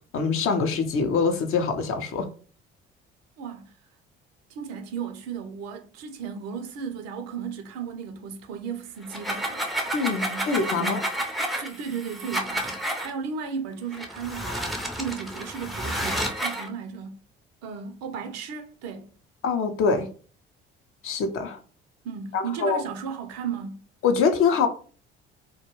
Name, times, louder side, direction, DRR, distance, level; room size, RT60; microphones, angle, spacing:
voice 1, 0.1-2.3 9.9-11.0 19.4-20.1 21.0-21.6 22.3-22.8 24.0-24.7, left 5 dB, 45° left, 0.6 m, -24 dB
voice 2, 3.4-3.7 4.5-10.5 10.8-11.0 11.6-17.2 17.6-19.1 22.0-23.8, right 6 dB, 55° right, 0.6 m, -35 dB
sound 1, 9.0-13.1 13.9-16.7, right 1 dB, ahead, 0.5 m, -30 dB
2.2 x 2.2 x 3.0 m
hypercardioid pair, 55°, 30 cm